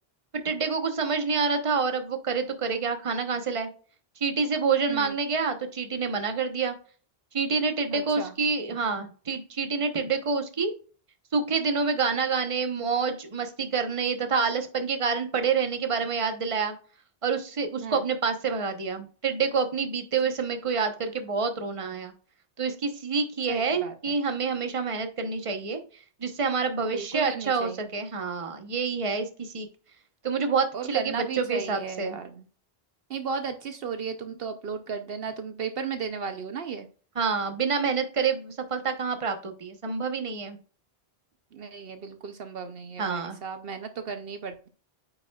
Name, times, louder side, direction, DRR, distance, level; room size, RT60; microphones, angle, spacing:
voice 1, 0.3-3.7 4.2-6.8 7.3-10.7 11.3-16.7 17.2-22.1 22.6-29.7 30.2-32.2 37.1-40.6 43.0-43.4, right 5 dB, 35° right, 6 dB, 1.0 m, -27 dB
voice 2, 7.9-8.3 17.8-18.0 23.5-24.2 26.9-27.8 30.7-32.4 33.1-36.9 41.5-44.7, right 6 dB, 70° right, 8 dB, 0.9 m, -35 dB
9.1 x 5.5 x 2.3 m, 0.40 s
omnidirectional pair, 1.0 m